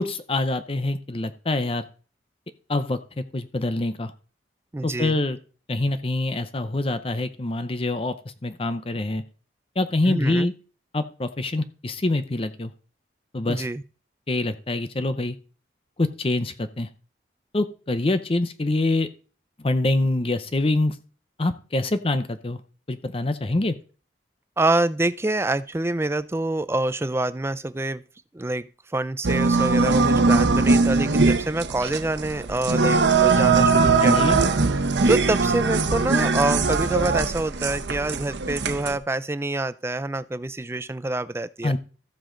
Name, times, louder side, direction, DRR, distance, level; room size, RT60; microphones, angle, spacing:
voice 1, 0.0-1.8 2.7-4.1 4.8-5.4 5.7-8.1 8.4-9.2 9.8-10.5 10.9-12.7 13.3-13.7 14.3-15.4 16.0-16.9 17.5-19.1 19.6-21.0 21.4-22.6 22.9-23.8 34.0-34.4 41.6-41.8, left 2 dB, 30° left, 0.6 m, -25 dB
voice 2, 4.7-5.2 10.1-10.5 13.5-13.8 24.6-28.0 28.3-34.5 35.1-41.8, right 2 dB, 15° right, 0.4 m, -26 dB
sound 1, 29.2-39.0, right 4 dB, 80° right, 0.9 m, -21 dB
14.0 x 7.5 x 3.8 m
head